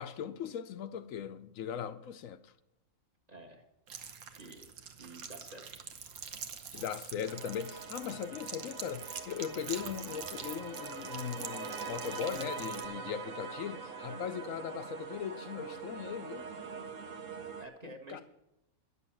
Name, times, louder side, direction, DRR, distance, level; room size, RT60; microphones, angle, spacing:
voice 1, 0.0-2.5 6.7-16.5 17.8-18.2, left 8 dB, 75° left, 1.0 m, -39 dB
voice 2, 3.3-3.6 4.4-4.7 5.0-5.6 14.0-14.2 17.5-18.2, right 2 dB, 30° right, 1.3 m, -50 dB
sound 1, 3.9-12.8, right 7 dB, 90° right, 1.4 m, -45 dB
sound 2, 7.3-17.6, right 5 dB, 65° right, 1.2 m, -43 dB
10.5 x 6.9 x 8.6 m
omnidirectional pair, 1.4 m